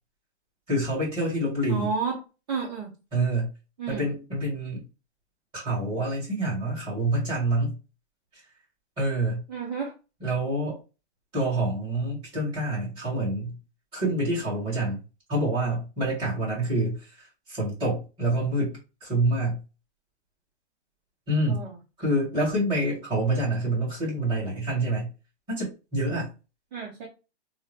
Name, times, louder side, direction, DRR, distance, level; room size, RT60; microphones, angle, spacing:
voice 1, 0.7-1.9 3.1-3.5 3.9-4.8 5.5-7.8 9.0-9.4 10.2-10.8 11.3-13.6 13.9-15.0 15.3-19.6 21.3-21.6 22.0-25.1 25.5-26.3, right 1 dB, 15° right, 1.8 m, -27 dB
voice 2, 1.7-2.2 2.5-2.9 3.8-4.1 9.5-9.9 21.5-21.7 26.7-27.1, right 5 dB, 40° right, 0.8 m, -31 dB
3.6 x 2.1 x 3.2 m
hypercardioid pair, 165°, 35 cm